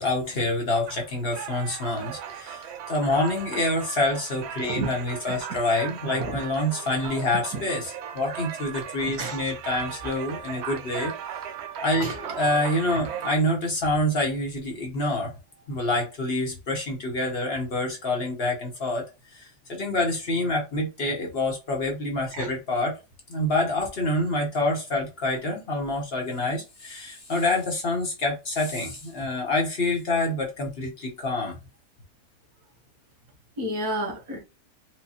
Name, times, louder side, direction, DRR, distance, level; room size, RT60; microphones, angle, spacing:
voice 1, 0.0-11.1 11.8-15.3 15.7-19.0 19.4-23.0 23.3-31.6, left 2 dB, 45° left, 1.1 m, -27 dB
sound 1, 0.9-13.4, right 8 dB, 70° right, 0.6 m, -37 dB
voice 2, 9.1-9.4 12.0-12.1 22.3-22.5 33.6-34.4, right 1 dB, 85° right, 1.8 m, -30 dB
4.6 x 2.2 x 2.8 m
omnidirectional pair, 1.6 m